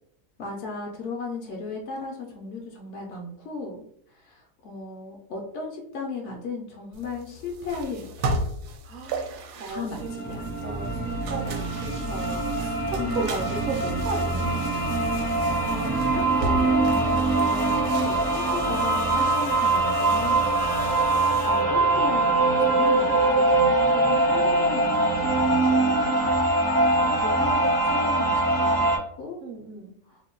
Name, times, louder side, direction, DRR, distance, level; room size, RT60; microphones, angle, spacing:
voice 1, 0.4-3.8 4.1-8.4 9.7-10.5 13.0-13.6 15.4-21.0 21.4-23.6 23.9-26.4 27.2-29.4 30.1-30.2, left 3 dB, 65° left, 0 dB, 0.7 m, -36 dB
sound 1, 6.9-21.6, right 2 dB, 75° right, 1.1 m, -37 dB
voice 2, 8.8-11.7 12.1-14.8 23.0-23.8 26.9-27.7 29.4-29.9, right 4 dB, 60° right, 1 dB, 0.7 m, -35 dB
sound 2, 9.9-29.0, right 2 dB, 30° right, 0.4 m, -23 dB
2.8 x 2.2 x 3.7 m, 0.71 s
omnidirectional pair, 1.8 m